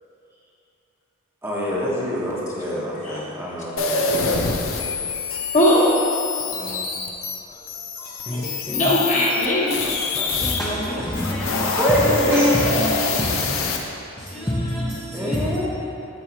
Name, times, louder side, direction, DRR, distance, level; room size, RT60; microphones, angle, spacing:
voice 1, 1.4-4.4 6.5-6.8 10.2-10.3 11.8-12.5 15.1-15.6, equal, 10° right, -6 dB, 1.0 m, -25 dB
sound 1, 3.8-10.6 11.0-13.8, left 3 dB, 85° left, 0.7 m, -25 dB
voice 2, 5.5-5.9 8.0-8.4 8.7-9.8 10.6-11.0, left 1 dB, 35° left, -5 dB, 1.3 m, -20 dB
voice 3, 8.3-8.9 10.4-13.5 14.2-15.6, equal, 15° left, -7 dB, 0.7 m, -27 dB
14.0 x 4.7 x 3.0 m, 2.8 s
head